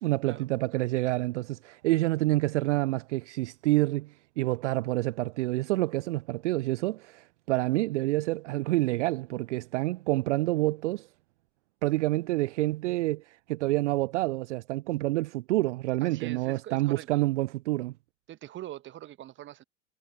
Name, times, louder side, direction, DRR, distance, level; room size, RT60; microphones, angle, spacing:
voice 1, 0.0-11.1 11.8-17.9, right 18 dB, 50° right, 0.8 m, -28 dB
voice 2, 16.0-17.2 18.3-19.6, right 13 dB, 25° right, 1.3 m, -43 dB
figure-of-eight pair, 90°, 47 cm